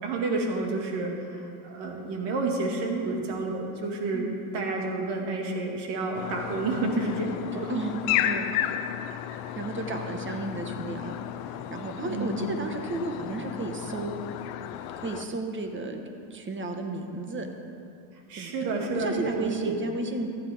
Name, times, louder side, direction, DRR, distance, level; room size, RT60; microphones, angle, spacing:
voice 1, 0.0-7.7 12.0-12.4 12.7-12.8 18.3-19.8, right 3 dB, 65° right, 1 dB, 2.1 m, -30 dB
sound 1, 6.1-15.3, left 11 dB, 85° left, 0.7 m, -33 dB
voice 2, 7.7-8.5 9.5-11.1 11.5-14.1 15.0-16.0 16.3-17.5 18.4-20.3, right 2 dB, 25° right, 4 dB, 1.3 m, -33 dB
14.5 x 9.6 x 3.6 m, 2.5 s
supercardioid pair, 95°, 44 cm